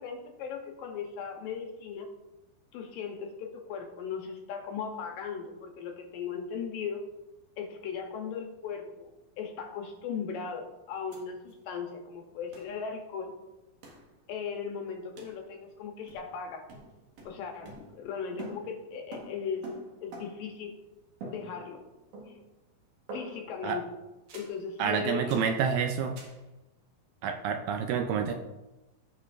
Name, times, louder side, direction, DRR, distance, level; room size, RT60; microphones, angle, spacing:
voice 1, 0.0-2.1 2.7-7.1 7.6-9.1 9.4-13.3 14.3-16.6 17.2-19.7 20.0-20.8 21.3-21.8 22.3-22.4 23.1-23.8 24.3-25.4, left 6 dB, 75° left, 3 dB, 2.4 m, -37 dB
sound 1, 11.1-11.2 11.5-11.6 12.5-12.7 13.8-14.1 15.2-15.4 16.1-16.4 16.7-18.1 18.4-20.6 21.2-21.9 22.1-22.6 23.1-23.6 24.3-24.6 25.3-25.6 26.2-26.4, right 2 dB, 60° right, 2.9 m, -46 dB
voice 2, 24.8-26.2 27.2-28.3, right 7 dB, 80° right, 5 dB, 2.1 m, -28 dB
16.0 x 5.4 x 2.5 m, 1.1 s
omnidirectional pair, 4.4 m